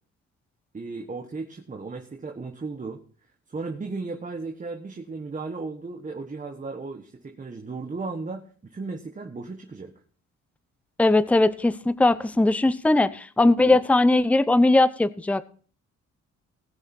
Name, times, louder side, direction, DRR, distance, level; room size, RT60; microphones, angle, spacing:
voice 1, 0.7-3.0 3.5-9.9 13.4-13.8, right 3 dB, 25° right, 1.4 m, -35 dB
voice 2, 11.0-15.4, left 2 dB, 5° left, 0.6 m, -20 dB
19.0 x 6.4 x 4.5 m
cardioid pair, 90°, 30 cm